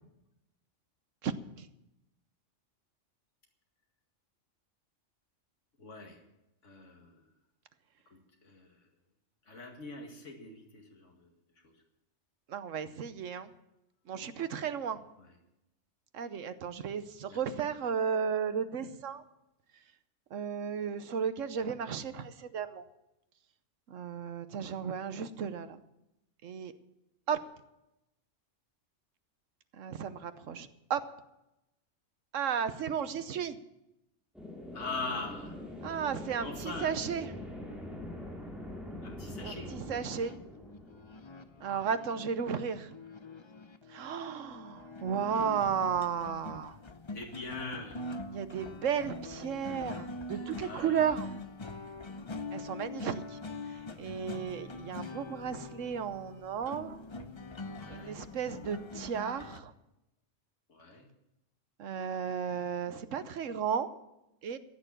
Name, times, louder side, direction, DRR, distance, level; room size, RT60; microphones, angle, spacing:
voice 1, 1.2-1.7 12.5-13.5 14.1-15.0 16.1-19.2 20.3-22.8 23.9-25.8 26.4-26.7 27.3-27.4 29.7-31.0 32.3-33.6 35.8-37.3 39.4-40.4 41.6-43.0 43.9-46.8 48.3-51.3 52.5-53.4 53.7-57.0 57.9-59.7 61.8-63.9 64.4-64.6, right 7 dB, 80° right, 12 dB, 1.3 m, -34 dB
voice 2, 5.8-6.2 6.6-7.2 8.1-8.8 9.5-11.3 17.3-17.4 34.7-35.6 36.4-36.9 39.0-39.7 42.5-42.6 45.3-45.5 47.1-48.0 50.6-51.1 57.7-58.2 60.7-61.1, left 3 dB, 70° left, 1 dB, 2.4 m, -42 dB
sound 1, 34.3-41.9, left 1 dB, ahead, 3.0 m, -44 dB
sound 2, 40.0-59.6, left 2 dB, 25° left, 0.7 m, -44 dB
15.0 x 9.2 x 7.4 m, 0.88 s
omnidirectional pair, 1.3 m